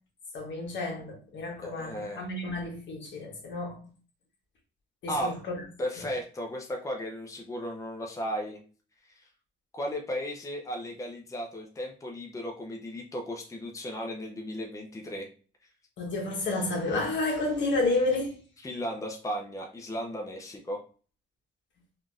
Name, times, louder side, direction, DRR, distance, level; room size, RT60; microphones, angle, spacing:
voice 1, 0.3-3.9 5.0-5.3 16.0-18.4, left 2 dB, 65° left, 1.2 m, -30 dB
voice 2, 1.6-2.3 5.1-5.4 5.8-8.6 9.0-9.2 9.7-15.3 18.6-20.8, equal, 15° left, 0.6 m, -35 dB
3.6 x 2.5 x 2.3 m
cardioid pair, 90°, 20 cm